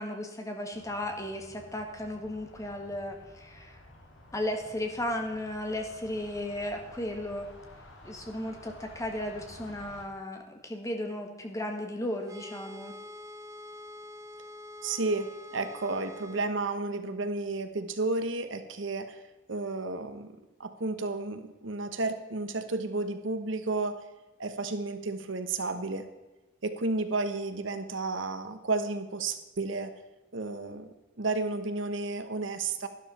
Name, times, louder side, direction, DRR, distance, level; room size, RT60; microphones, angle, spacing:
voice 1, 0.0-3.8 4.3-7.5 8.0-12.9, left 1 dB, 15° left, 3 dB, 1.6 m, -35 dB
sound 1, 0.7-10.1, left 1 dB, 65° left, 2.1 m, -52 dB
sound 2, 12.2-16.5, left 1 dB, 15° right, 0.7 m, -45 dB
voice 2, 14.8-19.2 19.5-24.0 24.4-26.1 26.6-29.9 30.3-32.9, right 3 dB, 70° right, 9 dB, 1.1 m, -32 dB
12.0 x 12.0 x 4.3 m, 1.1 s
head